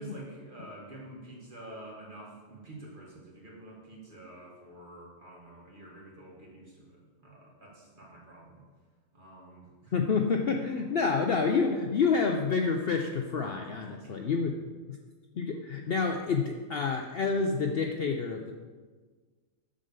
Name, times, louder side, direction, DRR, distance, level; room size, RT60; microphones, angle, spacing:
voice 1, 0.0-8.7 9.1-9.9 13.6-14.2, right 1 dB, 40° right, -3 dB, 1.9 m, -48 dB
voice 2, 9.9-14.6 15.3-18.5, left 5 dB, 60° left, 3 dB, 0.7 m, -28 dB
7.6 x 5.2 x 6.7 m, 1.4 s
omnidirectional pair, 1.4 m